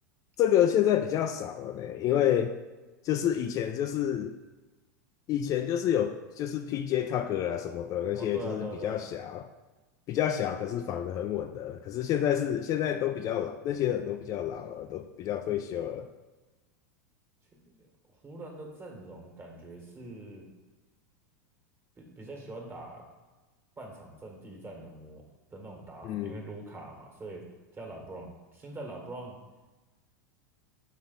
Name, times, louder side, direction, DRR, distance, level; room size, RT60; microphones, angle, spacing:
voice 1, 0.4-2.6 3.0-4.4 5.3-9.5 10.1-16.1 26.0-26.4, left 10 dB, 40° left, 7 dB, 0.3 m, -29 dB
voice 2, 8.1-9.0 17.6-17.8 18.2-20.4 22.0-23.0 23.8-25.2 25.5-27.4 27.7-29.4, right 2 dB, 25° right, 0 dB, 1.6 m, -43 dB
6.0 x 4.0 x 4.0 m, 1.2 s
hypercardioid pair, 100°, 9 cm